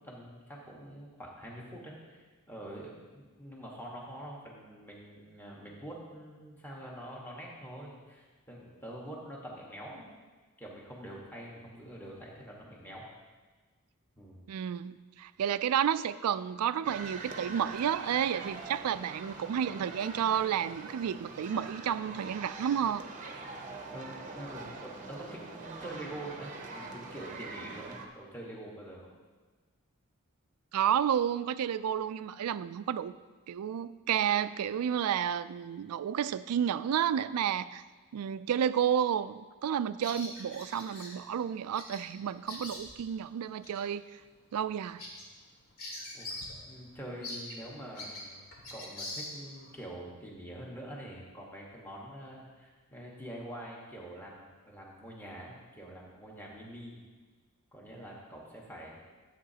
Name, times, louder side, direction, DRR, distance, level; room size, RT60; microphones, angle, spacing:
voice 1, 0.0-10.1 10.6-13.1 14.1-14.5 23.9-29.1 46.1-46.3 46.6-48.4 48.7-57.0 57.7-59.0, right 1 dB, 10° left, -4 dB, 1.3 m, -45 dB
voice 2, 14.5-23.0 30.7-33.1 33.5-37.8 38.1-44.0 44.5-45.0, right 9 dB, 85° right, 15 dB, 0.3 m, -31 dB
sound 1, 16.8-28.1, right 3 dB, 35° right, 0.7 m, -44 dB
Bird vocalization bird call bird song, 40.0-41.1 41.7-42.0 42.3-43.1 43.6-43.8 44.3-44.4 44.7-46.6 46.8-46.9 47.2-49.7, left 1 dB, 80° left, 2.3 m, -43 dB
13.5 x 8.0 x 2.8 m, 1.4 s
head